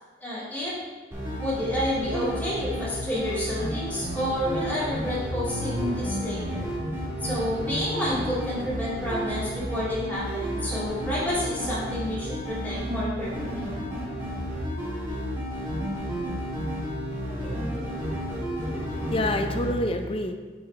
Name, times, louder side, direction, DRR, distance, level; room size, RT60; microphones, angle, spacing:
voice 1, 0.2-0.7 1.4-6.7 7.2-13.6, left 1 dB, 10° left, -9 dB, 2.0 m, -29 dB
sound 1, 1.1-19.7, equal, 15° right, 1.8 m, -31 dB
voice 2, 18.7-20.3, left 1 dB, 30° left, 5 dB, 0.5 m, -28 dB
9.2 x 4.0 x 3.2 m, 1.4 s
head